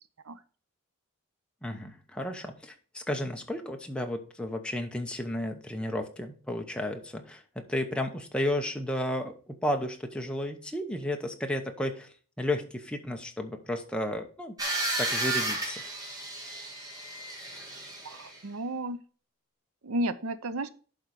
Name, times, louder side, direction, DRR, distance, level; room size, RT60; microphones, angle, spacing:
voice 1, 1.6-14.6 15.0-15.8, left 1 dB, 5° left, 3 dB, 0.8 m, -33 dB
sound 1, 14.6-18.4, right 2 dB, 15° right, 1.9 m, -33 dB
voice 2, 18.0-19.0 19.8-20.7, right 1 dB, 75° right, 13 dB, 0.7 m, -33 dB
11.5 x 3.9 x 4.8 m, 0.40 s
head